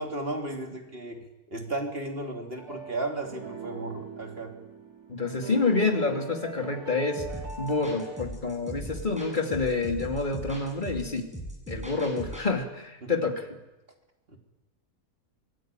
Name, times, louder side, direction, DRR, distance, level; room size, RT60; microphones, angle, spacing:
voice 1, 0.0-4.5 13.0-13.1 14.3-14.4, right 2 dB, 40° right, 2 dB, 3.4 m, -34 dB
sound 1, 2.6-8.2, right 4 dB, 85° right, 3.2 m, -41 dB
voice 2, 5.1-7.2 7.6-11.3 11.7-13.5, left 3 dB, 30° left, 3 dB, 2.8 m, -28 dB
sound 2, 7.2-12.5, right 1 dB, 5° right, 8.0 m, -39 dB
26.0 x 16.0 x 9.1 m, 1.0 s
omnidirectional pair, 1.6 m